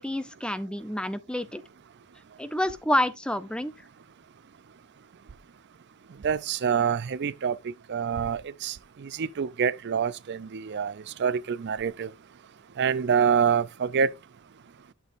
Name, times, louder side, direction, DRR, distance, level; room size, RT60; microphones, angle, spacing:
voice 1, 0.0-1.6 2.4-3.7, left 1 dB, 5° left, 0.5 m, -28 dB
voice 2, 6.2-10.9 11.2-12.1 12.8-14.1, right 7 dB, 50° right, 0.5 m, -26 dB
11.5 x 6.2 x 2.5 m
head